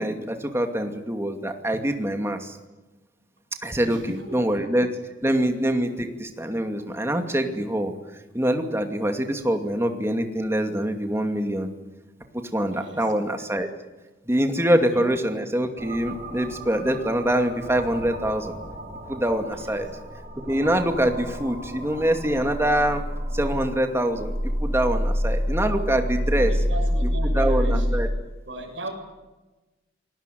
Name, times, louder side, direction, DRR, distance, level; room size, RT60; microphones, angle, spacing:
voice 1, 0.0-2.6 3.6-4.9 5.2-7.9 8.3-11.7 12.3-13.7 14.3-18.5 19.1-19.9 20.4-23.0 23.3-24.3 24.6-26.5 27.0-28.1, right 1 dB, 15° right, 5 dB, 2.5 m, -24 dB
voice 2, 3.8-4.5 12.7-13.1 14.9-15.0 19.5-19.9 26.4-27.9 28.4-28.9, right 1 dB, 70° right, 0 dB, 6.9 m, -37 dB
sound 1, 15.8-28.0, equal, 40° right, 6.8 m, -28 dB
28.0 x 20.0 x 9.4 m, 1.1 s
head